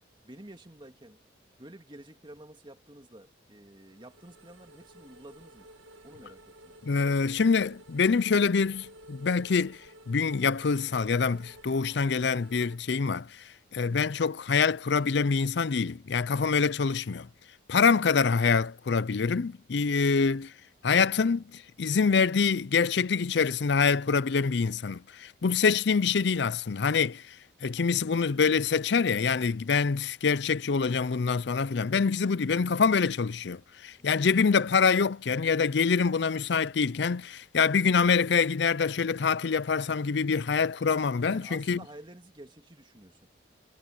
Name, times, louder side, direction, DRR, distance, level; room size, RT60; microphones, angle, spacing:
voice 1, 0.2-1.2 1.6-5.7 6.0-6.7 34.0-34.1 41.3-43.3, right 1 dB, 25° right, 2.3 m, -50 dB
sound 1, 3.8-12.8, equal, 85° right, 1.8 m, -52 dB
voice 2, 6.8-13.4 13.7-17.3 17.7-20.5 20.8-27.4 27.6-41.8, left 5 dB, 65° left, 0.5 m, -25 dB
head